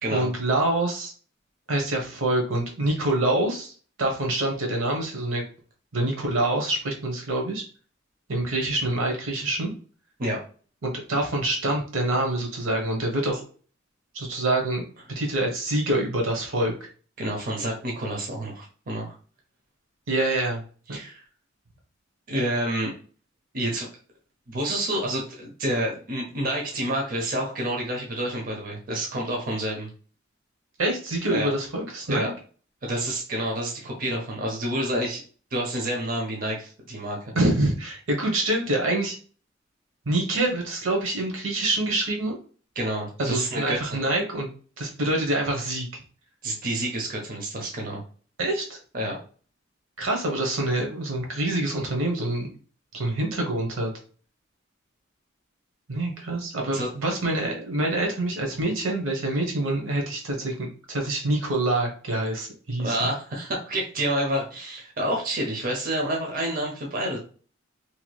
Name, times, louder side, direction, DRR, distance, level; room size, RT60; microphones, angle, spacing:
voice 1, 0.1-1.1 1.7-3.7 4.0-5.4 5.9-7.6 8.3-9.7 10.8-13.4 14.1-14.8 15.1-16.7 20.1-20.6 30.8-32.3 37.3-39.2 40.1-42.4 43.2-44.5 44.8-46.0 48.4-48.8 50.0-52.5 52.9-53.9 55.9-63.1, right 1 dB, 80° right, 1 dB, 0.9 m, -26 dB
voice 2, 17.2-19.1 20.9-21.2 22.3-22.9 23.5-23.9 24.5-29.9 31.3-31.5 32.1-32.3 32.8-35.2 35.5-37.3 42.8-44.0 46.4-48.0 48.9-49.2 56.7-56.9 62.8-67.2, right 1 dB, 45° right, 0 dB, 0.6 m, -28 dB
3.1 x 2.8 x 2.2 m, 0.41 s
head